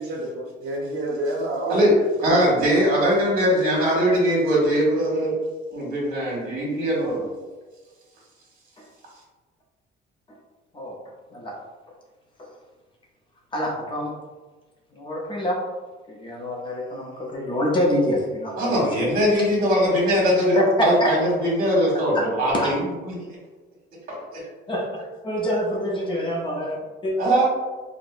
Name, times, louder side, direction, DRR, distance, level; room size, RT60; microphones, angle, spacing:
voice 1, 0.0-2.1, right 1 dB, 70° right, -2 dB, 0.7 m, -28 dB
voice 2, 2.2-5.4 5.7-7.3 18.6-23.1 24.1-24.4 27.2-27.4, equal, 50° right, -4 dB, 1.5 m, -21 dB
voice 3, 13.5-14.1 14.9-15.6 16.1-18.9 20.5-20.6 22.5-22.7 24.7-24.9 25.2-27.1, left 1 dB, 25° left, -2 dB, 0.6 m, -26 dB
4.5 x 2.1 x 2.5 m, 1.3 s
cardioid pair, 150°, 19 cm